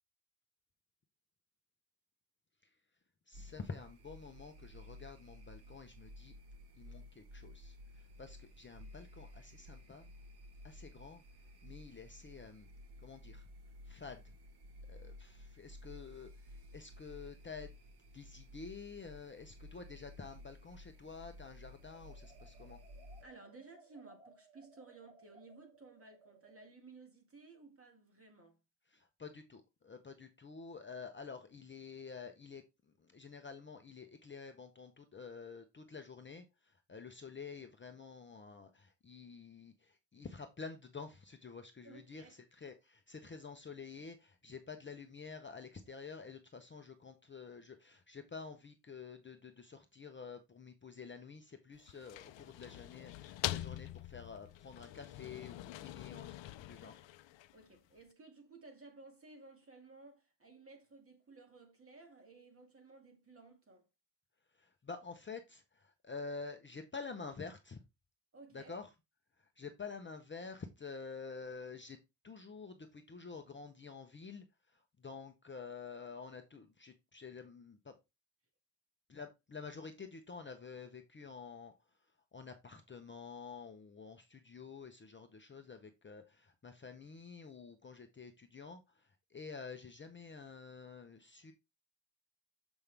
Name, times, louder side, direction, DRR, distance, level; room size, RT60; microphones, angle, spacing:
voice 1, 3.3-6.3 6.8-10.1 10.6-11.2 11.6-12.7 13.0-13.5 13.8-14.2 14.9-17.7 18.1-22.8 28.9-32.6 33.0-57.1 64.5-67.8 68.5-68.9 69.4-72.0 72.2-74.4 74.7-77.9 79.1-81.7 82.3-91.5, left 5 dB, 25° left, 0.6 m, -49 dB
sound 1, 3.3-23.2, left 1 dB, 60° right, 1.4 m, -54 dB
sound 2, 21.9-26.7, right 3 dB, 10° right, 2.0 m, -62 dB
voice 2, 23.2-28.6 41.8-42.4 57.5-63.9 68.3-68.8, right 3 dB, 30° right, 2.0 m, -57 dB
sound 3, 51.7-57.8, left 14 dB, 85° left, 0.5 m, -44 dB
7.1 x 5.4 x 3.3 m
wide cardioid pair, 170°, 44 cm